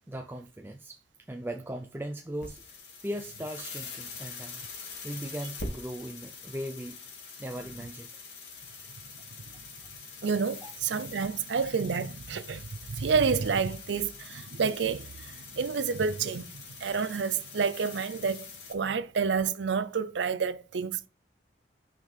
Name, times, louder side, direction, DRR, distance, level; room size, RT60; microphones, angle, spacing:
voice 1, 0.1-1.0 1.3-4.6 5.0-7.0 7.4-8.1 8.9-9.1 10.6-10.7, equal, 10° right, 0.5 m, -38 dB
sound 1, 2.3-18.7, left 4 dB, 75° left, 2.3 m, -44 dB
voice 2, 10.2-21.1, right 5 dB, 80° right, 0.5 m, -29 dB
6.2 x 5.2 x 5.7 m
head